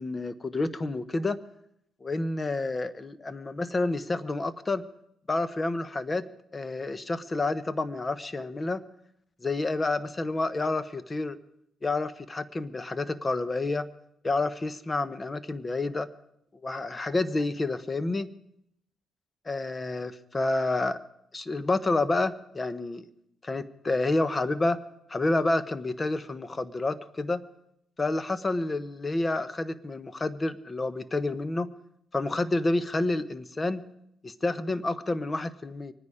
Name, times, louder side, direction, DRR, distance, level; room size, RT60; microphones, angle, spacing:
voice 1, 0.0-1.4 2.0-4.8 5.3-6.2 6.5-8.8 9.4-11.4 11.8-13.9 14.2-16.1 16.6-18.3 19.5-21.0 21.3-23.0 23.4-24.8 25.1-27.4 28.0-31.7 32.1-33.8 34.2-35.9, left 2 dB, 25° left, 14 dB, 1.0 m, -29 dB
24.0 x 9.7 x 5.0 m, 0.75 s
cardioid pair, 90°, 0 cm